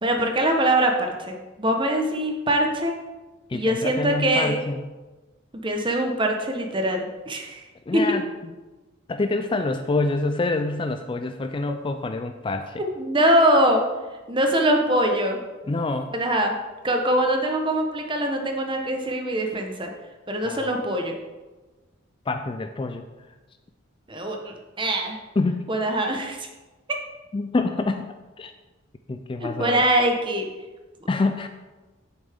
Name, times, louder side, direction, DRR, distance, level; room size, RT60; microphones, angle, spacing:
voice 1, 0.0-3.0 3.5-4.6 5.6-7.6 7.9-8.0 12.8-13.8 14.3-15.4 16.1-16.5 16.8-19.9 20.3-21.1 24.1-25.2 25.7-26.5 29.4-30.5, right 1 dB, 25° right, 3 dB, 1.0 m, -23 dB
voice 2, 3.5-4.8 7.9-8.5 9.1-12.8 15.7-16.1 20.4-20.7 22.3-23.1 25.4-25.7 27.3-28.5 29.1-29.8 31.1-31.5, left 3 dB, 25° left, 7 dB, 0.3 m, -26 dB
8.8 x 7.1 x 3.6 m, 1.2 s
head